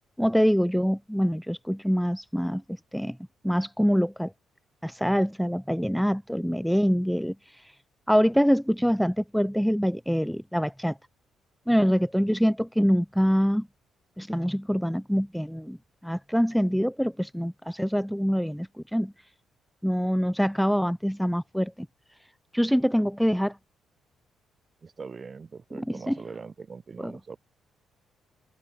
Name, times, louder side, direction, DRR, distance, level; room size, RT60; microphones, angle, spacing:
voice 1, 0.2-2.6 2.9-3.2 3.4-4.3 4.8-7.7 8.1-11.0 11.7-13.7 14.2-15.8 16.0-19.1 19.8-21.9 22.5-23.6 25.7-26.2 27.0-27.1, equal, ahead, 0.8 m, -25 dB
voice 2, 24.8-27.4, right 5 dB, 35° right, 6.3 m, -41 dB
open air
cardioid pair, 90°, 0 cm